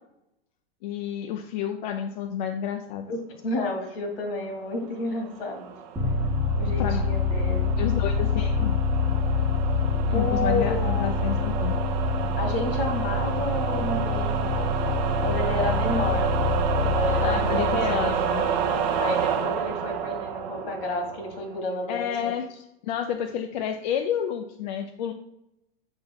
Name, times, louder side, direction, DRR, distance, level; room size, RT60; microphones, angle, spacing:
voice 1, 0.8-3.1 6.8-7.0 7.8-8.7 10.1-11.7 17.2-18.4 21.9-22.5 22.8-25.1, left 9 dB, 50° left, 4 dB, 0.5 m, -30 dB
voice 2, 3.1-5.8 6.6-7.8 10.1-11.2 12.4-14.6 15.2-16.3 16.8-18.2 19.0-22.1, left 2 dB, 65° left, 3 dB, 1.9 m, -31 dB
sound 1, 5.1-21.6, right 8 dB, 45° right, 0.7 m, -30 dB
sound 2, 6.0-19.4, left 4 dB, 5° right, 0.8 m, -26 dB
6.1 x 3.8 x 4.7 m, 0.86 s
hypercardioid pair, 145°, 31 cm